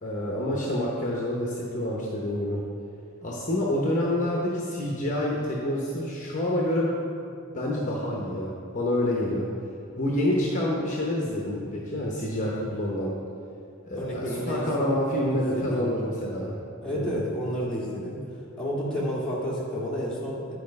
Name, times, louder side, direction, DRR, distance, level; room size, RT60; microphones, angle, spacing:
voice 1, 0.0-2.6 3.2-6.9 7.5-9.5 10.0-13.1 13.8-16.5 16.9-17.2, left 1 dB, 35° left, -3 dB, 0.9 m, -27 dB
voice 2, 13.9-15.0 15.3-15.9 16.8-18.2 18.6-20.5, equal, 5° left, -8 dB, 1.9 m, -31 dB
10.0 x 4.8 x 5.4 m, 2.5 s
head